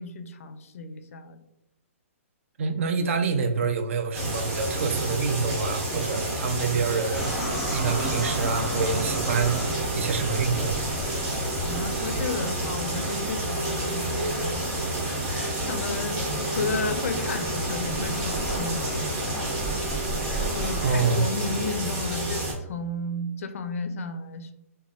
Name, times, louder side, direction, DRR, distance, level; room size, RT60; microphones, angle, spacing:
voice 1, 0.0-1.4 11.6-19.5 20.6-24.5, left 3 dB, 70° left, 8 dB, 0.4 m, -33 dB
voice 2, 2.6-9.6 9.9-10.9 20.8-21.3, right 5 dB, 60° right, 6 dB, 0.4 m, -27 dB
sound 1, 4.1-22.5, right 1 dB, 30° right, 1.1 m, -30 dB
sound 2, 7.1-21.0, right 1 dB, 5° right, 1.0 m, -34 dB
3.2 x 2.2 x 2.4 m, 0.90 s
hypercardioid pair, 145°, 8 cm